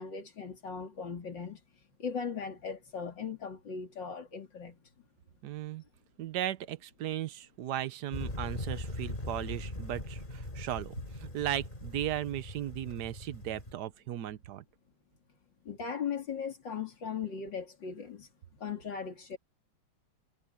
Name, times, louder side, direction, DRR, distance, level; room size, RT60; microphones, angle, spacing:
voice 1, 0.0-1.6 2.0-4.8 15.7-18.3 18.6-19.4, left 6 dB, 55° left, 3.4 m, -38 dB
voice 2, 5.4-5.8 6.2-14.6, right 12 dB, 60° right, 1.2 m, -36 dB
sound 1, 8.1-13.7, left 1 dB, 20° left, 3.8 m, -40 dB
omnidirectional pair, 2.4 m